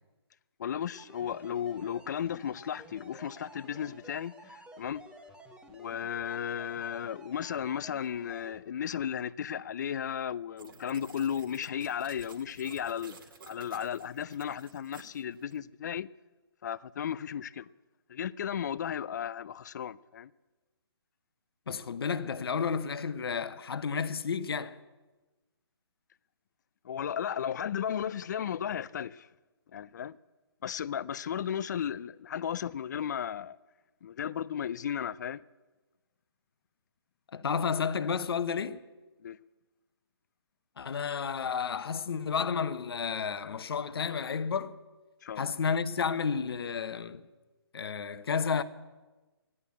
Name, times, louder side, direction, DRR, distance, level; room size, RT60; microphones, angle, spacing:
voice 1, 0.6-5.0 5.7-13.2 13.4-16.1 16.6-17.7 18.1-20.3 26.8-29.3 29.7-30.2 30.6-33.6 34.0-35.4 39.2-39.4 45.2-45.5, left 9 dB, 45° left, 0.4 m, -35 dB
sound 1, 0.9-8.6, right 1 dB, 5° right, 1.0 m, -52 dB
sound 2, 10.6-15.6, right 5 dB, 55° right, 1.9 m, -52 dB
voice 2, 21.7-24.8 37.3-38.8 40.8-44.8 45.4-47.2 47.7-48.6, left 6 dB, 65° left, 0.9 m, -31 dB
13.5 x 11.0 x 8.4 m
hypercardioid pair, 155°, 14 cm